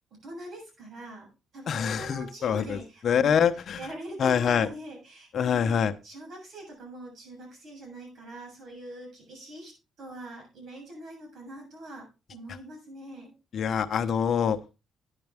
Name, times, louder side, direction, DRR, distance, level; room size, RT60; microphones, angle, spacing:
voice 1, 0.2-1.3 1.5-5.8 6.0-9.7 10.0-13.3, right 1 dB, 70° right, 1 dB, 7.2 m, -43 dB
voice 2, 1.7-3.8 4.2-4.7 5.3-5.9 13.5-14.6, left 7 dB, 60° left, 8 dB, 0.9 m, -25 dB
10.5 x 10.0 x 3.5 m, 0.29 s
cardioid pair, 90°, 0 cm